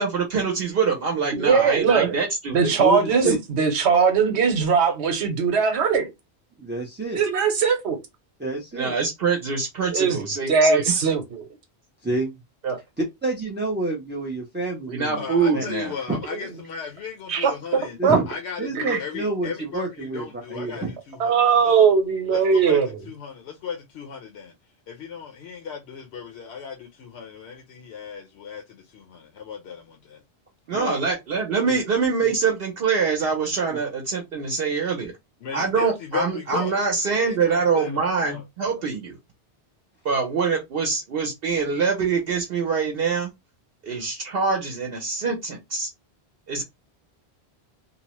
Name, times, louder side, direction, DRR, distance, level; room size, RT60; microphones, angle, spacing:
voice 1, 0.0-2.6 3.2-3.3 8.7-11.0 12.6-12.8 14.9-15.9 30.7-35.1 35.5-39.2 40.0-43.3 43.8-45.9 46.5-46.6, right 5 dB, 65° right, 0.8 m, -24 dB
voice 2, 1.3-2.2 2.5-6.1 7.1-8.0 9.9-10.2 10.5-11.5 17.3-18.2 18.7-19.0 21.2-23.0, right 6 dB, 90° right, 1.0 m, -20 dB
voice 3, 2.8-3.4 6.6-7.2 8.4-8.9 12.0-12.4 13.0-15.3 15.5-15.6 16.1-16.2 18.0-18.3 18.6-20.9 30.7-31.0 31.7-31.8 32.2-32.3 33.7-33.8, right 2 dB, 15° right, 0.3 m, -28 dB
voice 4, 15.1-18.0 18.3-21.7 22.3-22.8 23.1-24.5 24.9-30.2 35.4-36.8 37.1-38.4, left 7 dB, 80° left, 0.9 m, -36 dB
2.8 x 2.0 x 2.9 m
omnidirectional pair, 1.1 m